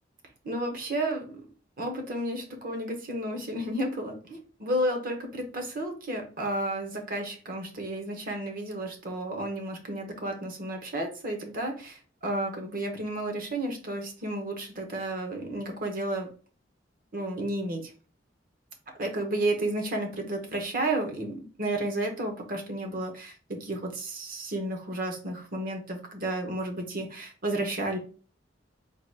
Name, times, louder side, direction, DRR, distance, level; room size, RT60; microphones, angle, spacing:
voice 1, 0.4-1.3 1.8-16.3 17.1-17.9 19.0-28.0, right 1 dB, 50° right, 3 dB, 1.1 m, -32 dB
3.9 x 2.4 x 4.5 m, 0.37 s
head